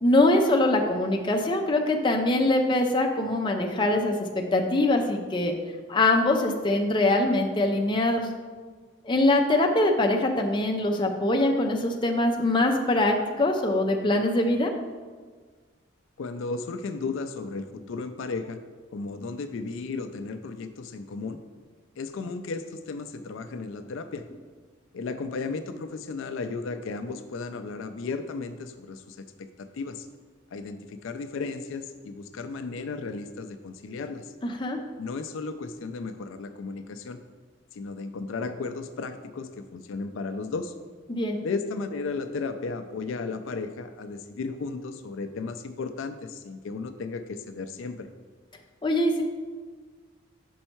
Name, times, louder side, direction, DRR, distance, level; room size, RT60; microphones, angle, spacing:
voice 1, 0.0-4.1 4.5-5.5 5.9-8.3 9.1-14.7 34.4-34.8 41.1-41.4 48.8-49.2, left 2 dB, 25° left, 2 dB, 0.5 m, -23 dB
voice 2, 16.2-18.6 18.9-21.4 22.0-24.3 24.9-30.1 30.5-34.3 35.0-37.2 37.7-40.7 41.4-48.1, left 4 dB, 75° left, 9 dB, 0.4 m, -34 dB
5.4 x 5.4 x 4.4 m, 1.5 s
head